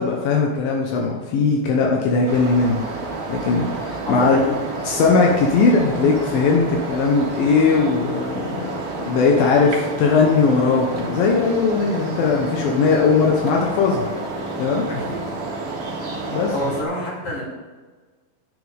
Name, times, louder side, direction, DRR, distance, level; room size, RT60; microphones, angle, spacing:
voice 1, 0.0-2.8 3.3-4.4 4.8-14.1 14.6-14.9 16.3-16.5, left 4 dB, 80° left, 0 dB, 2.8 m, -19 dB
sound 1, 2.2-16.8, right 2 dB, 45° right, 2.0 m, -30 dB
voice 2, 4.1-4.6 14.9-15.1 16.5-17.4, left 1 dB, 40° left, -5 dB, 3.9 m, -27 dB
10.5 x 10.0 x 3.5 m, 1.4 s
omnidirectional pair, 4.2 m